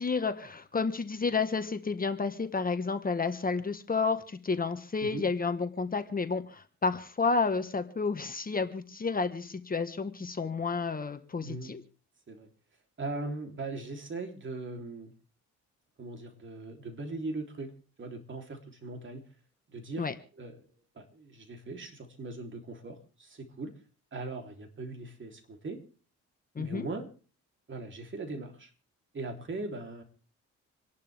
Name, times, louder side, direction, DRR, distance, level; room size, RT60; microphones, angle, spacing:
voice 1, 0.0-11.8 20.0-20.1 26.5-26.9, left 4 dB, 30° left, 8 dB, 1.4 m, -31 dB
voice 2, 11.4-11.7 12.3-12.5 13.0-15.1 16.0-17.7 18.0-19.2 19.7-20.1 20.4-20.6 20.9-23.7 24.1-25.8 26.6-27.1 27.7-28.7 29.1-30.0, right 2 dB, 40° right, 4 dB, 3.6 m, -39 dB
27.5 x 11.5 x 3.5 m, 0.39 s
cardioid pair, 90°, 30 cm